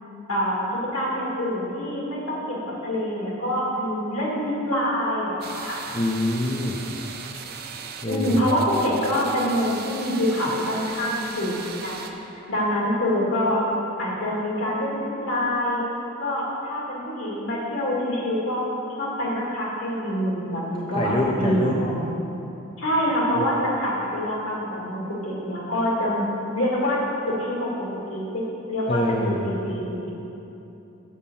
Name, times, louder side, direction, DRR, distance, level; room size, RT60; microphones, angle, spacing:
voice 1, 0.3-0.6 0.9-5.8 8.1-12.1 12.5-13.6 14.0-15.9 16.2-18.6 19.0-22.1 22.8-27.0 27.3-28.4 28.7-30.1, equal, 70° left, -4 dB, 2.1 m, -26 dB
sound 1, 5.4-12.1, right 6 dB, 50° right, 0.6 m, -38 dB
voice 2, 5.9-6.8 8.0-8.5 20.9-21.8 23.4-23.5 28.9-29.4, left 1 dB, 25° left, -1 dB, 0.5 m, -25 dB
7.3 x 5.5 x 6.8 m, 3.0 s
head